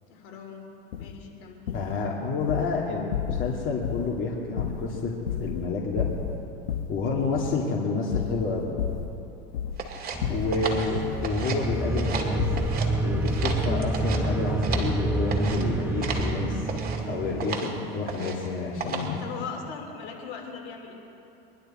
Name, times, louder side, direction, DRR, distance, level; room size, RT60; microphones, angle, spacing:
voice 1, 0.1-0.7 1.0-1.6 10.6-11.1 19.2-20.9, left 6 dB, 60° left, 1 dB, 3.1 m, -40 dB
sound 1, 0.9-1.1 1.7-2.0 2.4-2.7 3.1-3.6 3.8-4.2 4.6-5.7 6.0-7.0 7.4-7.6 8.1-9.2 9.5-9.9 10.2-11.3 11.7-12.0 12.4-12.8 13.1-13.4, left 8 dB, 85° left, 1.2 m, -32 dB
voice 2, 1.7-5.1 5.4-6.1 6.9-8.7 10.3-12.4 13.0-16.6 17.0-19.2, left 4 dB, 40° left, -3 dB, 2.4 m, -29 dB
sound 2, 9.8-11.7 11.9-12.9 13.2-15.0 15.3-15.6 16.0-16.3 16.7-17.0 17.4-17.7 18.1-18.5 18.8-19.2, right 5 dB, 30° right, 2.3 m, -34 dB
sound 3, 10.1-17.5, right 2 dB, 5° right, 0.4 m, -28 dB
23.0 x 11.5 x 4.4 m, 2.9 s
hypercardioid pair, 105°, 31 cm